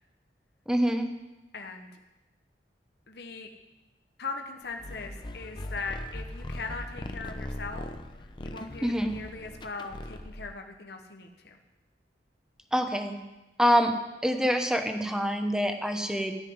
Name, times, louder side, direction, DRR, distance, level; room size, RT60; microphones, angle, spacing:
voice 1, 0.7-1.1 8.8-9.2 12.7-13.2 13.6-14.0 14.2-16.4, equal, 5° right, 6 dB, 1.0 m, -26 dB
voice 2, 1.5-1.9 3.1-3.5 4.2-7.9 8.4-11.6, left 4 dB, 65° left, 4 dB, 1.1 m, -39 dB
sound 1, 4.8-10.5, left 1 dB, 25° left, 0.8 m, -40 dB
14.0 x 5.8 x 9.5 m, 1.1 s
head